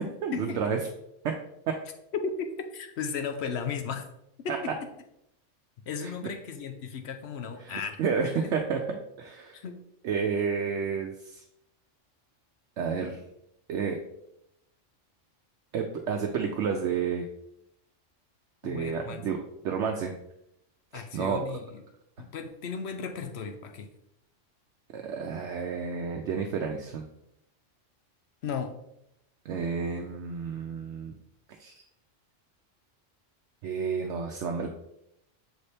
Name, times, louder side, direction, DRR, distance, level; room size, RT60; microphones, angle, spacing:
voice 1, 0.2-0.8 1.2-1.3 1.7-1.8 4.5-4.6 6.0-6.1 7.6-8.8 9.2-9.6 10.0-11.4 12.8-13.2 13.7-14.0 15.7-17.3 18.6-19.4 19.6-20.1 20.9-21.4 24.9-27.0 29.5-31.1 31.6-31.7 33.6-34.7, right 6 dB, 70° right, 2 dB, 0.9 m, -30 dB
voice 2, 2.2-4.0 4.4-4.7 5.9-8.4 9.5-9.8 18.6-19.2 20.9-21.8 22.2-23.9 28.4-28.7, left 5 dB, 65° left, 7 dB, 0.9 m, -35 dB
6.7 x 4.2 x 3.3 m, 0.80 s
omnidirectional pair, 1.3 m